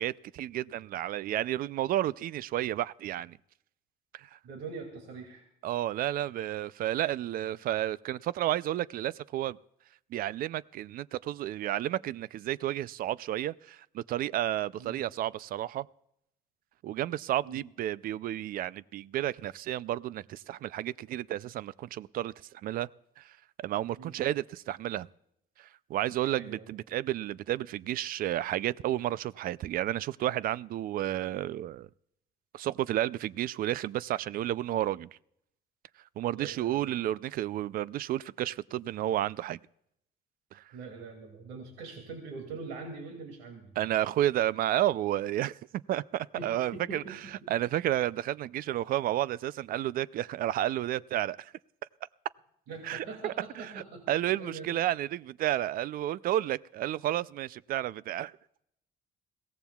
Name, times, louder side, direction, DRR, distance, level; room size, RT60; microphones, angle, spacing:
voice 1, 0.0-3.4 4.1-4.4 5.6-9.6 10.1-15.9 16.8-22.3 22.6-22.9 23.2-25.1 25.6-31.9 32.5-35.1 36.2-39.6 40.5-40.6 43.8-47.2 47.5-51.5 52.8-58.3, right 13 dB, 60° right, 0.4 m, -31 dB
voice 2, 4.4-5.4 14.8-15.1 17.4-17.6 24.0-24.1 26.3-26.7 36.3-37.0 40.7-43.7 46.3-47.3 52.7-54.7, right 4 dB, 85° right, 2.4 m, -43 dB
21.5 x 16.5 x 2.3 m
cardioid pair, 110°, 17 cm